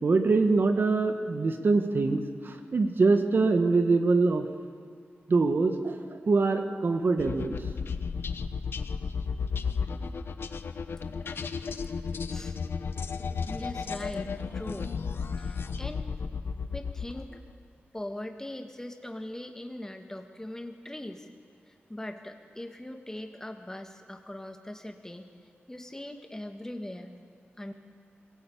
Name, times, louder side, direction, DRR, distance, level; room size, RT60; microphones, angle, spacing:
voice 1, 0.0-4.5 5.3-7.6, right 3 dB, 55° right, 6 dB, 1.6 m, -24 dB
sound 1, 7.2-17.4, left 5 dB, 65° left, 0.9 m, -33 dB
voice 2, 13.5-15.0 15.4-16.1 16.7-17.3 17.9-21.3 21.7-25.3 25.7-27.2 27.6-27.7, left 1 dB, 15° left, 5 dB, 1.7 m, -41 dB
23.0 x 17.5 x 8.6 m, 2.1 s
wide cardioid pair, 105°, 4 cm